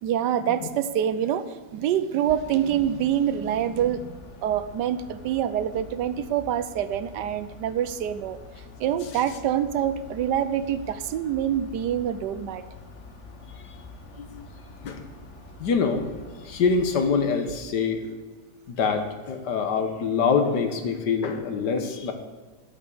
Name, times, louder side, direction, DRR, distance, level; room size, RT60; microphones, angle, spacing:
voice 1, 0.0-4.1 4.4-8.4 8.8-12.6, right 10 dB, 90° right, 12 dB, 1.3 m, -26 dB
sound 1, 2.3-17.0, left 3 dB, 45° left, 1.4 m, -46 dB
voice 2, 15.6-16.1 16.4-18.0 18.7-22.1, left 5 dB, 80° left, 6 dB, 1.8 m, -25 dB
12.5 x 6.1 x 6.8 m, 1.3 s
omnidirectional pair, 1.8 m